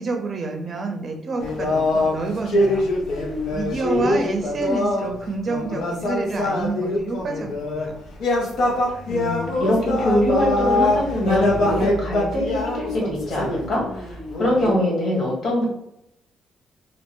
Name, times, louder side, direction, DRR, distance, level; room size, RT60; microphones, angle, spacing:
voice 1, 0.0-2.8 3.5-8.0, right 3 dB, 40° right, 3 dB, 0.5 m, -28 dB
sound 1, 1.4-5.1 5.5-7.9 8.1-14.7, left 2 dB, 80° left, 0.7 m, -23 dB
voice 2, 9.1-15.6, left 1 dB, 55° left, -3 dB, 1.3 m, -23 dB
2.8 x 2.1 x 3.0 m, 0.77 s
cardioid pair, 90°, 0 cm